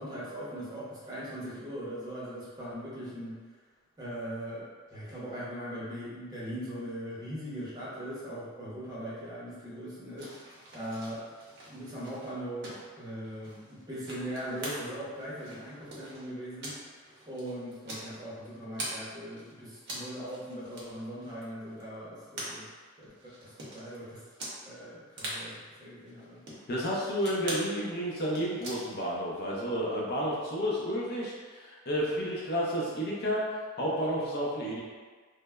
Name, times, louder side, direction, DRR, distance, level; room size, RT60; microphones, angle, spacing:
voice 1, 0.0-3.4 4.0-11.2 11.7-16.8 17.3-22.7 23.0-24.3 24.6-26.4, equal, 20° right, -9 dB, 0.7 m, -40 dB
sound 1, 10.2-19.0 19.3-24.0 24.4-24.6 24.8-24.9 25.1-25.4 26.0-26.7 27.2-27.7 28.1-29.0, right 1 dB, 55° right, 0.7 m, -43 dB
voice 2, 26.7-33.4 33.8-34.8, equal, 50° left, -5 dB, 0.5 m, -31 dB
3.2 x 2.0 x 2.2 m, 1.5 s
head